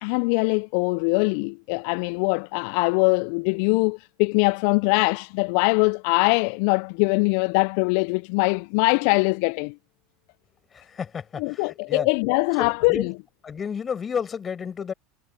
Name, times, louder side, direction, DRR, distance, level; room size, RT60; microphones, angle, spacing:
voice 1, 0.0-9.7 11.4-13.1, left 33 dB, 60° left, 0.5 m, -22 dB
voice 2, 10.7-12.1 12.5-13.1 13.4-14.9, left 7 dB, 30° left, 5.7 m, -31 dB
figure-of-eight pair, 75°, 0 cm